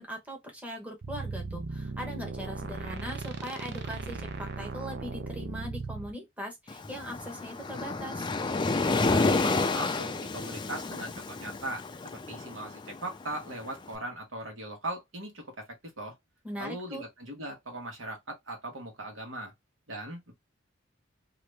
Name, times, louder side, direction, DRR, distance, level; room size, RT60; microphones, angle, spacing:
voice 1, 0.0-8.3 16.4-17.0, equal, 5° right, 0.9 m, -40 dB
sound 1, 1.0-6.1, right 3 dB, 60° right, 0.6 m, -37 dB
Waves surf, 6.7-13.8, left 3 dB, 25° left, 0.4 m, -30 dB
voice 2, 9.1-15.7 16.0-16.2 16.6-19.5 19.9-20.3, right 1 dB, 80° right, 1.4 m, -39 dB
2.9 x 2.5 x 3.2 m
head